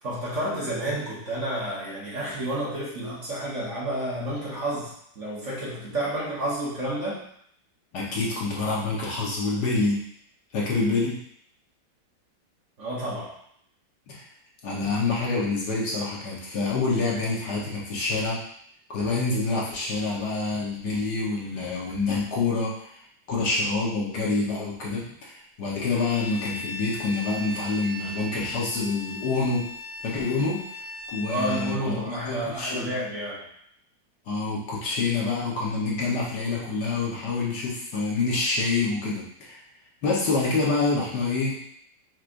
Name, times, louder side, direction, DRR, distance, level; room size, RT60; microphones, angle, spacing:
voice 1, 0.0-7.2 12.8-13.3 31.3-33.5, right 1 dB, 45° right, -6 dB, 1.3 m, -30 dB
voice 2, 7.9-10.0 10.5-11.2 14.1-14.2 14.6-18.4 18.9-22.9 23.3-29.6 30.0-30.6 31.1-33.0 34.3-39.6 40.0-41.6, left 3 dB, 65° left, -4 dB, 1.6 m, -27 dB
Bowed string instrument, 25.9-31.8, left 2 dB, 15° left, 0.6 m, -38 dB
6.0 x 3.3 x 2.6 m, 0.67 s
omnidirectional pair, 2.0 m